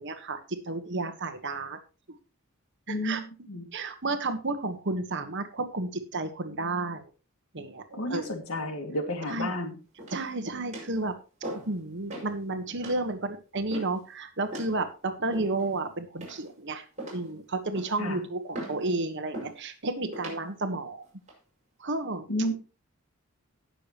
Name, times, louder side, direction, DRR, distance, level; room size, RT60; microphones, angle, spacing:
voice 1, 0.0-1.8 2.9-3.2 3.7-7.0 7.5-8.3 9.3-9.5 10.1-11.2 11.7-16.8 17.1-21.0 21.8-22.3, right 2 dB, 55° right, 8 dB, 1.4 m, -32 dB
voice 2, 2.9-3.7 7.9-9.8 18.0-18.3 22.3-22.5, left 1 dB, 80° left, 5 dB, 2.3 m, -31 dB
sound 1, 10.0-10.3 10.7-11.0 11.4-11.7 12.1-12.3 12.8-13.0 13.7-14.0 14.5-14.7 15.3-15.7 16.2-16.6 17.0-17.3 17.7-18.0 18.5-18.8 19.3-19.6 20.1-20.4 21.0-21.3, right 1 dB, 35° right, 5.7 m, -39 dB
18.5 x 6.8 x 3.1 m, 0.34 s
head